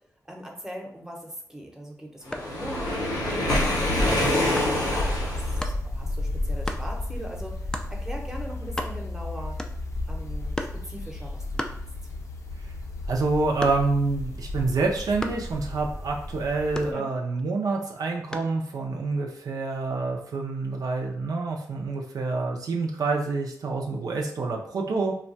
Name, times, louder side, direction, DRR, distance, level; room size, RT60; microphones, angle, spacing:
voice 1, 0.3-7.6 7.9-9.6 10.1-11.8 16.9-17.1, equal, 5° right, 0 dB, 0.8 m, -40 dB
Waves surf, 2.3-5.6, left 1 dB, 90° left, 0.9 m, -25 dB
sound 1, 2.3-2.6 3.5-3.8 4.6-4.8 5.6-5.8 6.6-6.9 7.7-8.0 8.4-8.5 8.6-9.2 9.6-10.0 10.5-10.9 11.6-12.3 12.7-14.1 15.2-15.5 16.7-17.4 18.3-18.6, left 1 dB, 10° left, 0.4 m, -35 dB
sound 2, 4.9-16.9, left 2 dB, 55° left, 0.6 m, -33 dB
voice 2, 13.1-25.1, right 3 dB, 70° right, 1 dB, 0.5 m, -27 dB
2.3 x 2.2 x 3.9 m, 0.62 s
cardioid pair, 55°, 6 cm